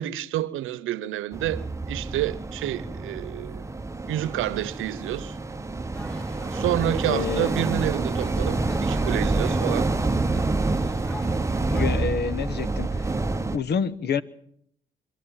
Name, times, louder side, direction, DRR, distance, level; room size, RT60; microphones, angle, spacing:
voice 1, 0.0-3.6 4.1-5.4 6.5-9.9, right 13 dB, 85° right, 0.9 m, -29 dB
sound 1, 1.3-13.6, right 2 dB, 15° right, 0.9 m, -27 dB
sound 2, 5.9-11.9, right 1 dB, 5° left, 2.8 m, -41 dB
voice 2, 7.0-7.5 11.7-13.1 13.5-14.2, left 6 dB, 55° left, 1.1 m, -28 dB
24.5 x 13.0 x 8.9 m
cardioid pair, 90°, 20 cm